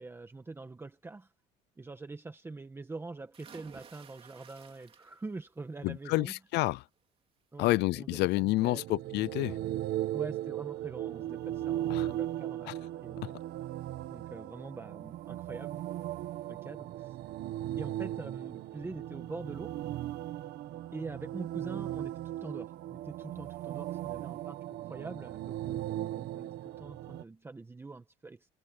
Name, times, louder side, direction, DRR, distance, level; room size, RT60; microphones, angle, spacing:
voice 1, 0.0-1.3 1.8-6.3 7.5-8.8 9.4-9.7 10.1-12.7 13.0-13.4 14.1-15.8 16.5-17.2 17.8-19.8 20.9-28.5, right 3 dB, 15° right, 1.4 m, -44 dB
sound 1, 3.3-5.4 5.8-6.3 7.6-7.7 8.1-8.2, right 7 dB, 30° right, 3.4 m, -54 dB
voice 2, 5.8-6.8 7.6-9.6 11.9-12.1 12.7-12.8, left 20 dB, 70° left, 0.5 m, -29 dB
sound 2, 8.4-27.2, right 13 dB, 65° right, 1.4 m, -37 dB
cardioid pair, 145°, 18 cm